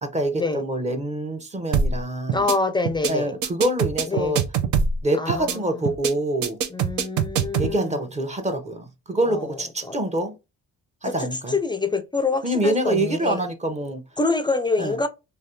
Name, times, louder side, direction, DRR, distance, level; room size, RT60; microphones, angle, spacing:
voice 1, 0.0-2.5 3.1-4.4 5.0-6.6 7.6-10.3 11.0-11.6 12.4-14.0 14.8-15.0, right 1 dB, 25° right, 0.7 m, -25 dB
sound 1, 1.7-2.0 2.3-2.5 2.8-3.1 3.4-5.0 5.3-5.5 5.8-6.1 6.4-7.7, right 6 dB, 75° right, 0.6 m, -23 dB
voice 2, 2.3-3.3 4.1-4.4 5.2-5.6 6.7-8.0 9.3-9.5 9.8-10.0 11.0-11.1 11.5-13.4 14.2-15.1, left 3 dB, 15° left, 0.4 m, -25 dB
3.3 x 2.4 x 2.7 m
cardioid pair, 90°, 30 cm